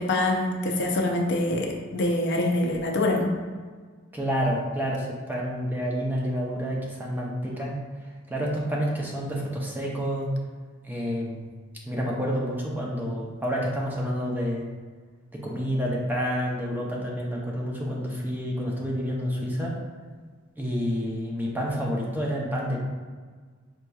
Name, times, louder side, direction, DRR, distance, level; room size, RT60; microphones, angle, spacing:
voice 1, 0.0-3.4, left 1 dB, 60° left, 2 dB, 0.5 m, -25 dB
voice 2, 4.1-7.8 8.3-10.3 10.8-11.5 11.9-14.7 15.3-19.7 20.6-22.8, equal, 10° right, -3 dB, 0.5 m, -29 dB
5.3 x 2.9 x 2.3 m, 1.5 s
head